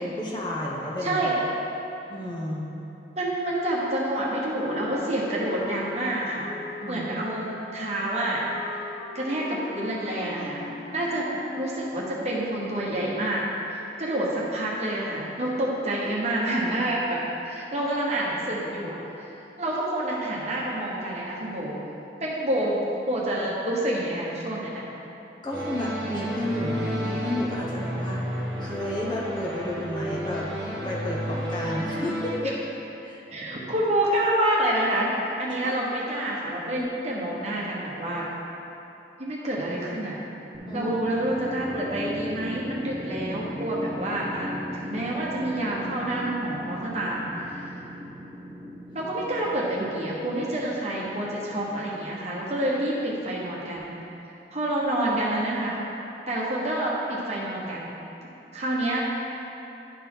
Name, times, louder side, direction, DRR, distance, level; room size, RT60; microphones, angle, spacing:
voice 1, 0.0-1.2 2.1-2.7 6.8-7.1 25.4-28.2 28.6-30.5 30.8-32.5 33.0-33.2 35.6-35.7 36.8-36.9 40.7-40.9, left 1 dB, 25° left, -4 dB, 0.8 m, -31 dB
voice 2, 1.0-1.3 3.2-6.5 6.9-8.4 9.1-10.6 10.9-13.4 13.7-21.8 22.2-22.7 23.0-24.8 33.3-35.1 35.4-38.3 39.2-40.2 40.7-44.5 44.8-47.7 48.9-53.9 54.5-55.8 56.3-57.9 58.5-59.0, right 1 dB, 40° right, -5 dB, 1.2 m, -28 dB
Wind instrument woodwind instrument, 3.9-12.1, left 3 dB, 85° left, 0.6 m, -41 dB
sound 1, 25.5-32.4, equal, 65° right, 1.4 m, -31 dB
sound 2, 40.5-52.7, left 1 dB, 5° right, 0.4 m, -38 dB
11.0 x 4.2 x 3.9 m, 3.0 s
head